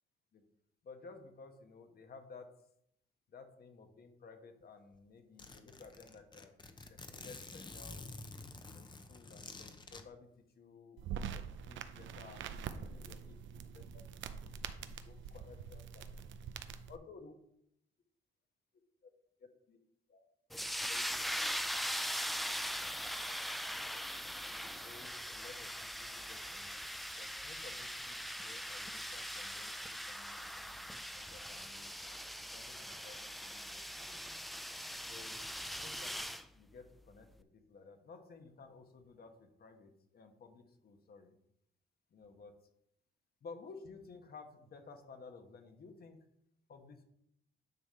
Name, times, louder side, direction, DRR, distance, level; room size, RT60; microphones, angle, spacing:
voice 1, 0.8-2.5 3.3-8.0 8.7-10.3 10.6-11.0 11.3-13.4 13.7-14.0 14.8-16.4 16.9-17.3 19.0-19.1 19.4-19.8 20.1-20.3 20.9-21.1 21.4-21.5 24.5-26.8 27.1-31.9 32.4-34.2 35.1-35.4 35.7-41.4 42.1-42.5 43.4-46.2 46.7-47.0, left 4 dB, 50° left, 6 dB, 1.2 m, -55 dB
Zipper (clothing), 4.6-4.7 4.9-5.0 5.4-10.0, left 3 dB, 25° left, 0.7 m, -49 dB
sound 1, 11.0-17.0, right 7 dB, 70° right, 0.6 m, -45 dB
sound 2, 20.5-36.4, equal, ahead, 0.3 m, -41 dB
9.6 x 3.6 x 4.3 m, 0.74 s
cardioid pair, 90°, 20 cm